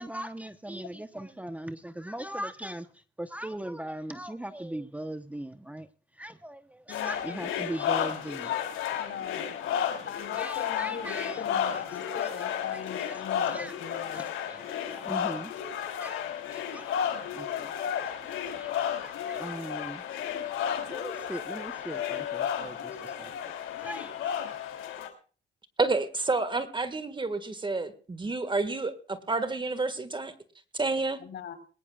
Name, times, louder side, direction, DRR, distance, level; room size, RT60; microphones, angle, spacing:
voice 1, 0.0-5.9 6.1-8.6 8.8-9.1 10.3-11.4 11.9-15.5 15.8-20.5 20.9-24.4, right 1 dB, 5° right, 1.0 m, -40 dB
sound 1, 6.9-25.1, left 9 dB, 85° left, 3.0 m, -33 dB
voice 2, 6.9-7.4 8.9-9.6 10.1-14.2 31.2-31.5, left 7 dB, 65° left, 4.4 m, -40 dB
voice 3, 25.8-30.3 30.7-31.2, right 3 dB, 25° right, 1.8 m, -29 dB
21.0 x 19.0 x 2.4 m
cardioid pair, 90°, 20 cm